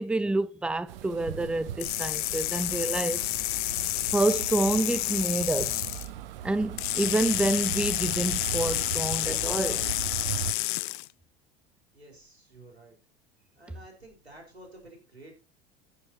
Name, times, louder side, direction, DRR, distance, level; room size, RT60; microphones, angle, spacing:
voice 1, 0.0-3.3 3.8-5.8 6.4-9.8, right 2 dB, 5° right, 0.6 m, -28 dB
sound 1, 0.9-10.5, right 10 dB, 60° right, 1.0 m, -38 dB
sound 2, 1.8-6.1 6.8-11.1, left 21 dB, 55° left, 0.5 m, -30 dB
voice 2, 11.9-13.0 13.5-15.3, right 1 dB, 90° right, 4.7 m, -51 dB
15.0 x 6.5 x 4.3 m
figure-of-eight pair, 80°, 31 cm